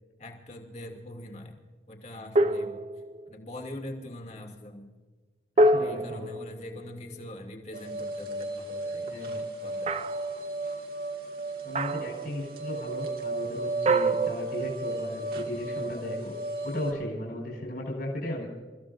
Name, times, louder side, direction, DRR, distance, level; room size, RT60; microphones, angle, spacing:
voice 1, 0.2-1.6 1.9-2.8 3.3-4.9 5.8-9.2 9.6-10.0 17.1-17.2, left 1 dB, 35° left, 2 dB, 2.6 m, -43 dB
sound 1, 2.3-3.3 5.6-7.3 9.9-10.3 11.7-12.2 13.9-15.1, right 1 dB, 35° right, 0.5 m, -26 dB
voice 2, 5.6-6.3 9.1-9.5 11.6-16.3 16.6-18.5, left 1 dB, 50° left, -1 dB, 4.6 m, -36 dB
sound 2, 7.7-16.9, right 2 dB, 50° right, 2.1 m, -34 dB
29.0 x 15.0 x 2.6 m, 1.4 s
head